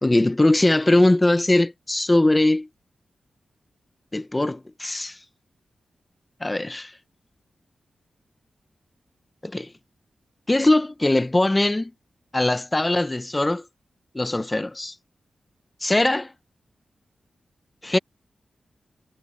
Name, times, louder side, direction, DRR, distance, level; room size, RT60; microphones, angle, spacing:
voice 1, 0.0-2.7 4.1-5.2 6.4-6.9 9.4-9.7 10.5-11.9 12.3-13.6 14.1-14.9 15.8-16.3 17.8-18.0, left 2 dB, 15° left, 0.8 m, -21 dB
wide cardioid pair, 130°, 0 cm